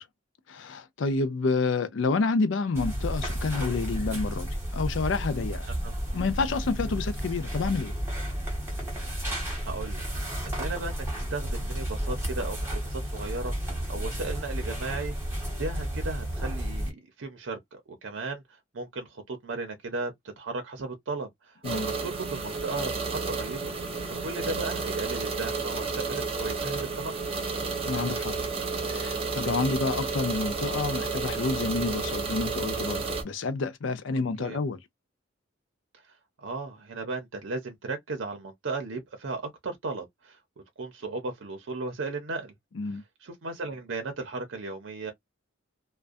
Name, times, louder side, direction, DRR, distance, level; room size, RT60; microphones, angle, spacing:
voice 1, 0.5-5.7 6.1-7.9 21.6-21.9 27.9-28.3 28.9-34.8 42.7-43.0, left 4 dB, 65° left, 0.4 m, -29 dB
sound 1, 2.7-16.9, equal, 10° right, 1.1 m, -32 dB
voice 2, 9.6-15.3 15.6-23.6 24.1-27.1 34.4-34.6 36.4-40.4 40.8-42.5 43.2-45.1, right 3 dB, 70° right, 0.6 m, -36 dB
sound 2, 21.6-33.2, right 4 dB, 30° right, 0.7 m, -31 dB
2.4 x 2.2 x 2.4 m
head